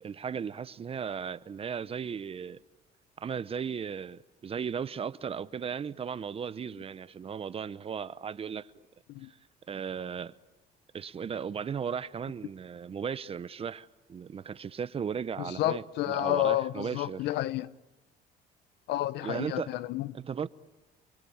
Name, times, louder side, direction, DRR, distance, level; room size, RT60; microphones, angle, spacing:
voice 1, 0.0-2.6 3.2-8.7 9.3-9.4 9.7-10.3 10.9-17.2 19.2-19.7 20.1-20.5, right 7 dB, 35° right, 0.9 m, -36 dB
voice 2, 15.4-17.7 18.9-20.1, left 15 dB, 80° left, 0.9 m, -30 dB
29.0 x 23.5 x 8.7 m
cardioid pair, 110°, 17 cm